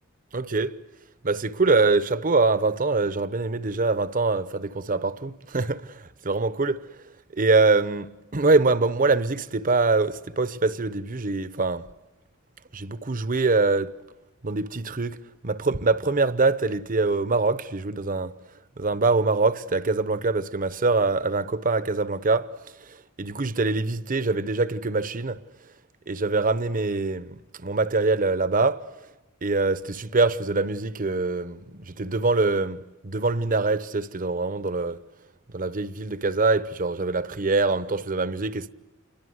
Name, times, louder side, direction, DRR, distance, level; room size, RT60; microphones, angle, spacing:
voice 1, 0.3-0.8 1.2-6.8 7.3-11.9 12.7-13.9 14.4-15.2 15.4-18.3 18.8-22.5 22.9-25.4 26.1-28.9 29.4-35.0 35.5-38.7, right 3 dB, 40° right, 0.9 m, -24 dB
28.5 x 22.5 x 7.9 m
head